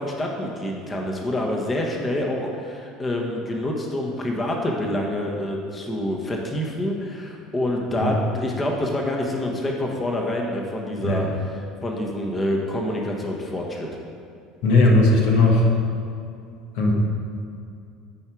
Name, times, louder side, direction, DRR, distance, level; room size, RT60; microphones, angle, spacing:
voice 1, 0.0-13.9, left 1 dB, 25° left, 0 dB, 1.2 m, -27 dB
voice 2, 14.6-15.7 16.7-16.9, left 2 dB, 75° left, -1 dB, 1.3 m, -17 dB
9.6 x 4.6 x 4.7 m, 2.4 s
supercardioid pair, 85°, 0 cm